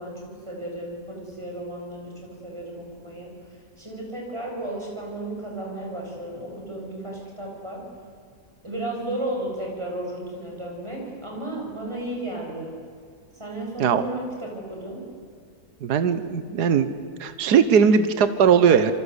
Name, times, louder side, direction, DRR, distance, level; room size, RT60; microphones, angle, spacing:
voice 1, 0.0-3.3 3.8-7.8 8.6-12.8 13.3-15.1, right 1 dB, 15° right, -1 dB, 7.3 m, -34 dB
voice 2, 15.8-16.9 17.2-18.9, right 7 dB, 75° right, 11 dB, 1.6 m, -19 dB
27.5 x 24.0 x 8.2 m, 2.2 s
omnidirectional pair, 1.7 m